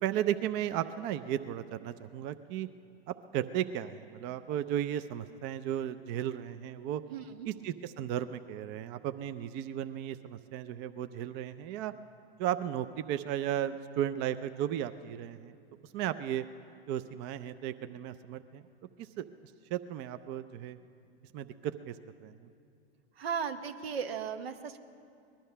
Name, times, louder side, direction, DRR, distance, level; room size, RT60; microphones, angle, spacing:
voice 1, 0.0-2.7 3.3-7.0 7.5-11.9 12.4-15.5 15.9-16.4 16.9-18.6 19.0-19.3 19.7-20.8 21.3-21.9 22.2-22.4, right 11 dB, 35° right, 10 dB, 0.5 m, -35 dB
voice 2, 7.1-7.5 23.2-24.8, right 7 dB, 80° right, 9 dB, 1.0 m, -36 dB
19.5 x 12.0 x 5.6 m, 2.4 s
hypercardioid pair, 110°, 30 cm